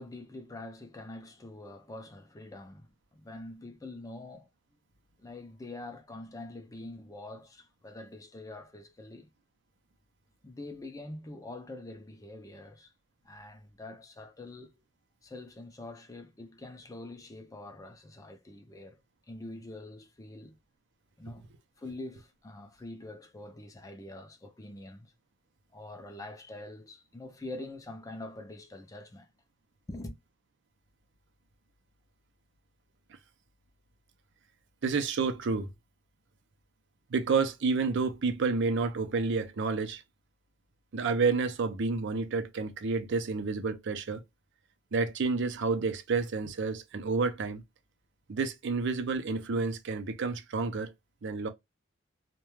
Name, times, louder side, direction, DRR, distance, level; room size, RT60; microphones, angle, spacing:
voice 1, 0.0-4.5 5.2-9.3 10.4-12.9 13.2-14.7 15.2-19.0 19.3-20.6 21.2-21.5 21.8-25.1 25.7-29.3 29.9-30.1, left 2 dB, 15° left, 0.4 m, -45 dB
voice 2, 34.8-35.7 37.1-40.0 40.9-44.2 44.9-47.6 48.3-50.9 51.2-51.5, right 4 dB, 65° right, 0.5 m, -29 dB
2.3 x 2.2 x 3.0 m
head